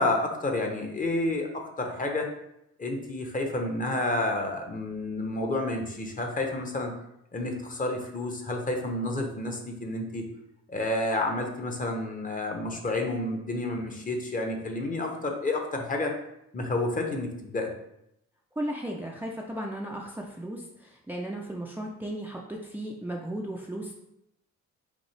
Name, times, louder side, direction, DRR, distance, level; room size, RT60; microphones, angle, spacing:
voice 1, 0.0-2.3 2.8-6.9 7.3-10.2 10.7-16.1 16.5-17.7, left 2 dB, 25° left, 3 dB, 0.9 m, -30 dB
voice 2, 18.6-23.9, right 1 dB, 5° right, -1 dB, 0.5 m, -35 dB
5.3 x 2.8 x 3.3 m, 0.81 s
cardioid pair, 90°, 30 cm